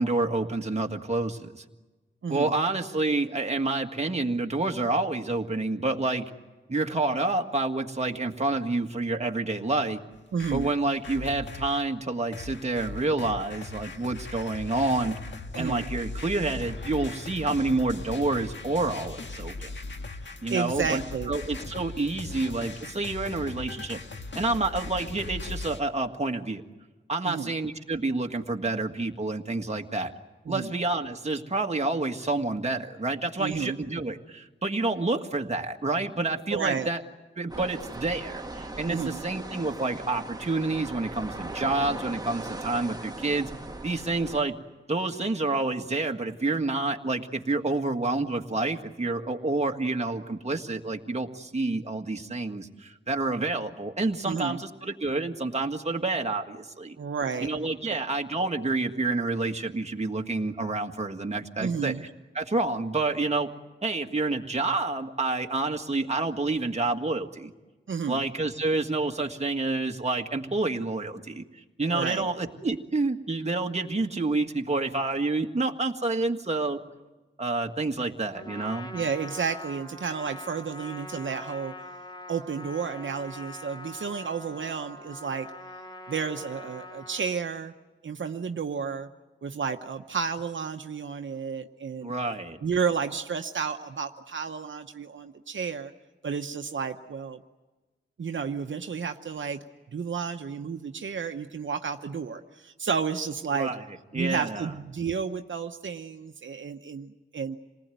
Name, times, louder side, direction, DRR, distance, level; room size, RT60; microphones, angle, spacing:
voice 1, 0.0-1.6 2.3-6.2 6.7-10.0 10.5-15.2 15.5-19.7 20.4-21.0 21.3-24.0 24.4-26.6 27.1-30.1 30.5-37.0 37.4-43.5 43.8-44.6 44.9-57.0 57.4-61.9 62.4-63.5 63.8-67.5 68.1-76.8 77.4-78.9 92.0-92.6 103.5-103.8 104.1-104.7, right 2 dB, 35° right, 3 dB, 1.8 m, -28 dB
voice 2, 2.2-2.5 10.3-10.7 15.5-15.9 20.2-21.3 27.2-27.5 30.5-30.7 33.4-33.8 36.5-36.9 38.9-39.2 54.3-54.6 57.0-57.5 57.9-58.0 61.6-62.0 67.9-68.2 71.9-72.3 78.9-81.7 82.3-85.5 86.1-87.7 88.0-89.1 89.4-92.1 92.6-95.9 96.2-97.4 98.2-103.7 104.1-107.6, right 6 dB, 80° right, 6 dB, 0.9 m, -31 dB
sound 1, 10.1-11.8 12.3-25.8, left 3 dB, 70° left, 1.7 m, -39 dB
sound 2, 37.5-44.4, right 2 dB, 20° right, 1.5 m, -39 dB
Trumpet, 78.3-87.3, left 1 dB, 25° left, 2.3 m, -43 dB
27.5 x 19.5 x 9.2 m, 1.2 s
wide cardioid pair, 60°, 20 cm